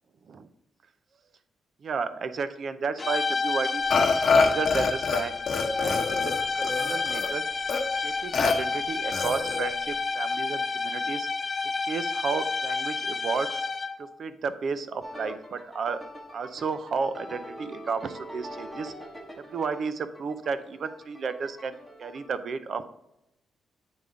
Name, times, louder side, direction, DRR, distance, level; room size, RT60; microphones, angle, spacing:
voice 1, 1.8-4.1 4.4-5.3 5.8-7.4 8.0-11.3 11.9-13.5 14.0-16.0 16.3-18.9 19.5-22.8, right 5 dB, 50° right, 12 dB, 0.5 m, -32 dB
sound 1, 3.0-14.1, left 4 dB, 30° left, 0.4 m, -30 dB
Burping eructation, 3.9-5.2 5.5-7.3 7.7-7.8 8.3-8.5 9.1-9.7, left 4 dB, 50° left, 1.1 m, -25 dB
sound 2, 15.0-22.3, equal, 10° right, 1.0 m, -43 dB
8.3 x 3.5 x 3.8 m, 0.83 s
cardioid pair, 110°, 0 cm